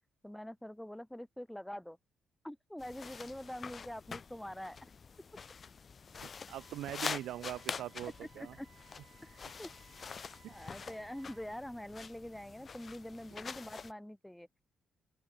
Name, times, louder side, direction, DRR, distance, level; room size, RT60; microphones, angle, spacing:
voice 1, 0.2-2.0 2.4-4.9 8.2-8.7 9.2-9.7 10.0-14.5, left 1 dB, 5° left, 4.2 m, -45 dB
sound 1, 2.8-13.9, left 5 dB, 40° left, 0.5 m, -46 dB
voice 2, 6.2-8.5 10.4-10.5, right 13 dB, 80° right, 0.4 m, -42 dB
Wind instrument woodwind instrument, 6.5-11.5, right 10 dB, 65° right, 4.3 m, -64 dB
open air
cardioid pair, 90°, 0 cm